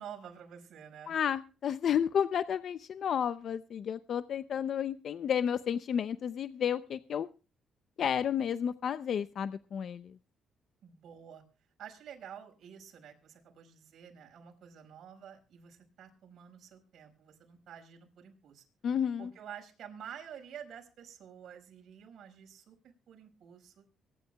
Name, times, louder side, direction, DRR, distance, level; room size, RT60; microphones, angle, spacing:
voice 1, 0.0-1.1 10.8-11.4 11.8-18.7 19.2-23.8, right 8 dB, 65° right, 2 dB, 5.1 m, -49 dB
voice 2, 1.1-7.3 8.0-10.2 18.8-19.3, left 8 dB, 60° left, 12 dB, 0.6 m, -31 dB
24.5 x 11.0 x 2.3 m, 0.34 s
cardioid pair, 90°, 0 cm